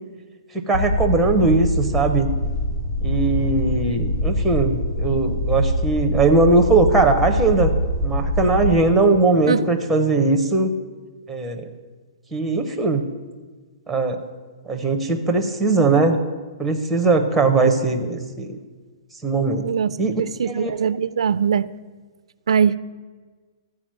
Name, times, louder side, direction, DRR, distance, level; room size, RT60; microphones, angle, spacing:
sound 1, 0.7-8.7, left 1 dB, 40° left, 3.2 m, -23 dB
voice 1, 0.7-2.3 3.0-7.7 8.0-10.7 11.3-11.7 12.3-13.0 13.9-14.2 14.7-16.2 16.6-18.6 19.2-19.6 20.0-20.7, right 3 dB, ahead, 3 dB, 0.6 m, -19 dB
voice 2, 20.2-21.7 22.5-22.8, right 7 dB, 85° right, 17 dB, 0.4 m, -20 dB
13.5 x 4.8 x 7.4 m, 1.4 s
hypercardioid pair, 180°, 3 cm